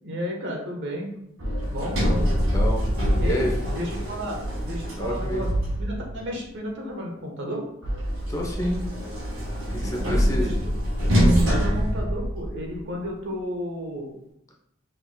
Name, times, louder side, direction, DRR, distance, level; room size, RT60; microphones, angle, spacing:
voice 1, 0.0-1.1 1.7-2.0 3.2-4.4 4.6-5.5 5.8-7.6 10.0-10.7 11.5-14.1, equal, 65° right, 0 dB, 1.1 m, -32 dB
Sliding door, 1.4-6.2 7.8-12.8, equal, 85° right, 1.7 m, -24 dB
voice 2, 2.5-2.8 3.2-3.5 5.0-5.5 8.3-8.8 9.7-10.6, equal, 15° left, 0 dB, 0.7 m, -29 dB
5.9 x 3.6 x 2.2 m, 0.75 s
head